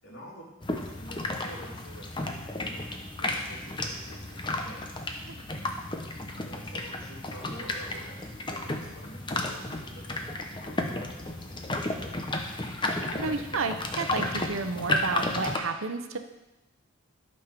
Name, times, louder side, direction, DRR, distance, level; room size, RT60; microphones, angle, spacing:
voice 1, 0.0-4.8 6.4-11.9, equal, 70° left, -4 dB, 3.2 m, -48 dB
sound 1, 0.6-15.6, left 2 dB, 25° left, 0.8 m, -33 dB
voice 2, 13.1-16.2, right 4 dB, 85° right, 7 dB, 0.8 m, -31 dB
12.5 x 5.4 x 5.9 m, 0.99 s
head